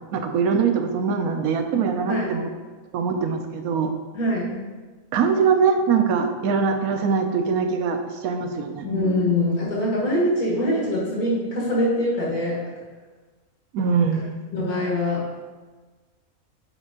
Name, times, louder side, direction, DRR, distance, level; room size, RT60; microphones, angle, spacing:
voice 1, 0.1-2.5 2.9-3.9 5.1-8.9 13.7-14.2, right 5 dB, 80° right, 6 dB, 1.2 m, -22 dB
voice 2, 4.1-4.6 8.8-12.7 14.5-15.3, left 1 dB, 80° left, -4 dB, 2.1 m, -23 dB
6.9 x 5.2 x 3.7 m, 1.3 s
omnidirectional pair, 1.5 m